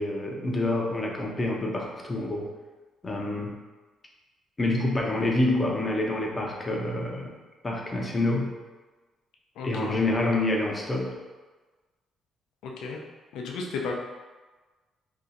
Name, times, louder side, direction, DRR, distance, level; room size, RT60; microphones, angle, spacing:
voice 1, 0.0-2.5 3.0-3.6 4.6-7.3 7.6-8.5 9.6-11.1, left 2 dB, 20° left, -1 dB, 0.6 m, -27 dB
voice 2, 9.6-9.9 12.6-13.0 13.3-14.0, left 4 dB, 85° left, 0 dB, 0.5 m, -34 dB
2.7 x 2.4 x 3.8 m, 1.3 s
cardioid pair, 120°, 0 cm